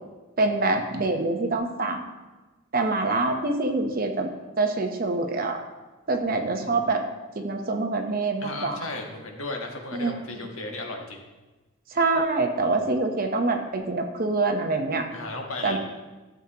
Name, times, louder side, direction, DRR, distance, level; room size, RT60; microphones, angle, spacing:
voice 1, 0.4-2.0 2.7-4.3 4.6-5.6 6.1-7.0 7.4-8.8 9.9-10.2 11.9-15.1 15.6-15.8, right 3 dB, 45° right, 4 dB, 0.9 m, -25 dB
voice 2, 6.3-6.8 8.4-11.2 15.1-15.8, left 2 dB, 75° left, 2 dB, 1.4 m, -36 dB
13.0 x 7.3 x 2.9 m, 1.2 s
head